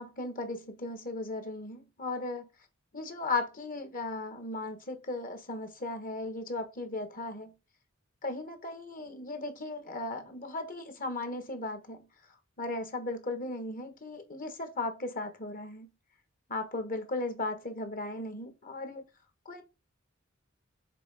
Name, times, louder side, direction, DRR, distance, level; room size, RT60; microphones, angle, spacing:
voice 1, 0.0-2.5 2.9-7.5 8.2-12.1 12.6-15.9 16.5-19.0 19.4-19.6, left 2 dB, 45° left, 1.5 m, -36 dB
6.8 x 3.8 x 4.9 m
head